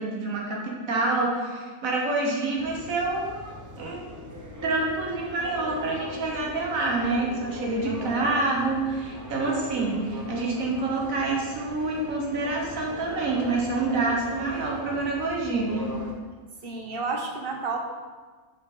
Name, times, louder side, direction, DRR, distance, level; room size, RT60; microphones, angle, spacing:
voice 1, 0.0-4.0 4.6-15.9, right 2 dB, 85° right, -1 dB, 1.6 m, -27 dB
sound 1, 2.6-16.1, equal, 15° right, 0.8 m, -40 dB
voice 2, 16.6-17.8, right 4 dB, 45° right, 2 dB, 1.1 m, -31 dB
8.0 x 6.0 x 3.8 m, 1.4 s
omnidirectional pair, 1.4 m